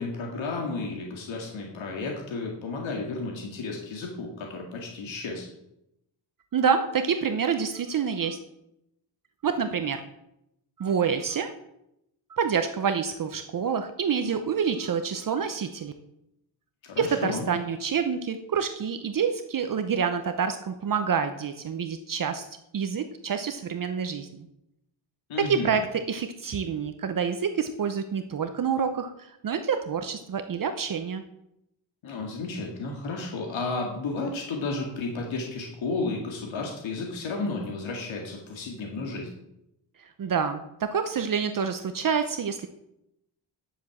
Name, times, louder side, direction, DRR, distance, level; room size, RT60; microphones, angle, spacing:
voice 1, 0.0-5.5 16.8-17.5 25.3-25.7 32.0-39.3, left 3 dB, 85° left, 0 dB, 2.2 m, -32 dB
voice 2, 6.5-8.4 9.4-10.0 10.8-11.5 12.3-15.9 17.0-22.5 22.7-24.5 25.4-31.2 40.0-42.7, right 6 dB, 45° right, 8 dB, 0.8 m, -27 dB
10.0 x 7.8 x 7.2 m, 0.83 s
wide cardioid pair, 150°, 45 cm